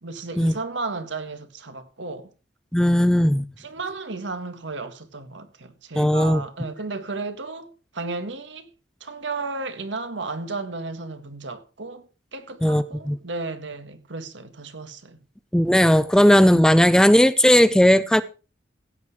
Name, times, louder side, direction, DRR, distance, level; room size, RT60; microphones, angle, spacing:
voice 1, 0.0-2.3 3.6-8.7 9.0-15.2, right 3 dB, 85° right, 1.7 m, -34 dB
voice 2, 2.7-3.4 6.0-6.4 12.6-13.2 15.5-18.2, equal, 5° left, 0.5 m, -17 dB
16.0 x 8.1 x 4.7 m
head